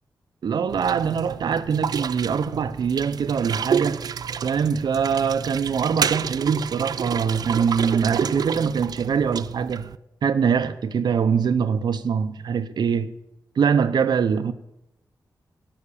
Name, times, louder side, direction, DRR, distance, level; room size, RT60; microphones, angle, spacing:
voice 1, 0.4-4.0 4.4-9.8 10.2-13.1 13.6-14.5, right 6 dB, 85° right, 0.8 m, -23 dB
sound 1, 0.7-10.0, right 7 dB, 65° right, 0.4 m, -29 dB
16.5 x 5.9 x 8.6 m
wide cardioid pair, 165°, 7 cm